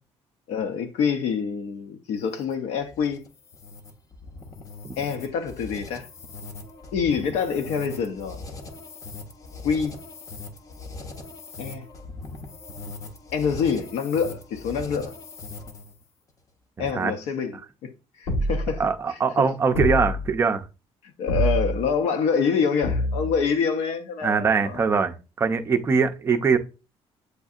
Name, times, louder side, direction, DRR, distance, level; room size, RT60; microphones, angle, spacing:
voice 1, 0.5-3.2 5.0-6.1 6.9-8.4 9.6-10.0 11.6-11.9 13.3-15.1 16.8-17.9 18.2-18.8 19.1-19.5 21.2-24.9, left 6 dB, 80° left, 0.6 m, -26 dB
sound 1, 2.2-16.0, left 3 dB, 30° left, 0.6 m, -40 dB
voice 2, 16.8-17.1 18.8-20.6 24.2-26.6, right 5 dB, 25° right, 0.5 m, -22 dB
sound 2, 18.3-18.9 19.7-20.3 21.3-21.9 22.8-23.4, left 1 dB, 65° left, 1.1 m, -25 dB
7.9 x 2.7 x 2.4 m
cardioid pair, 165°, 11 cm